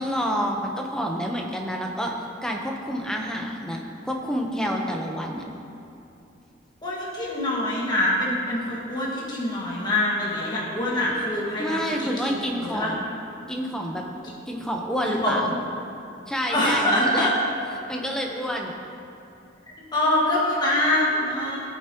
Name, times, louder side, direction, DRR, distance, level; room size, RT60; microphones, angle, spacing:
voice 1, 0.0-5.4 11.6-13.0 13.5-14.0 14.5-15.5 16.3-17.3 17.9-18.7, equal, 5° left, 0 dB, 0.9 m, -28 dB
voice 2, 6.8-12.9 15.1-15.6 16.5-17.3 19.9-21.6, left 1 dB, 25° left, -6 dB, 1.8 m, -25 dB
16.5 x 8.1 x 3.0 m, 2.8 s
head